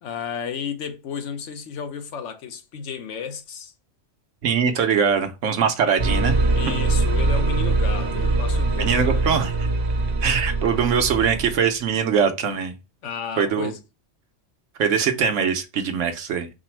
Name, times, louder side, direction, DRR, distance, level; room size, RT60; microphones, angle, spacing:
voice 1, 0.0-3.7 6.6-9.2 13.0-13.8, left 6 dB, 75° left, 1.0 m, -32 dB
voice 2, 4.4-6.4 8.8-9.5 10.2-12.7 13.4-13.7 14.8-16.5, right 6 dB, 80° right, 1.1 m, -22 dB
sound 1, 6.0-11.7, right 3 dB, 40° right, 0.7 m, -22 dB
4.9 x 2.0 x 4.4 m
omnidirectional pair, 1.3 m